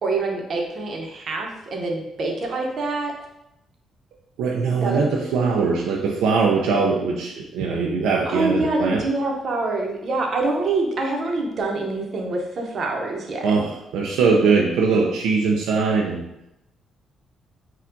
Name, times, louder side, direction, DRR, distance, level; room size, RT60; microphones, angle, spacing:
voice 1, 0.0-3.1 4.8-5.0 8.2-13.6, right 3 dB, 55° right, 1 dB, 0.9 m, -25 dB
voice 2, 4.4-9.0 13.4-16.3, right 4 dB, 85° right, -1 dB, 0.5 m, -21 dB
4.4 x 2.4 x 3.9 m, 0.85 s
cardioid pair, 90°, 0 cm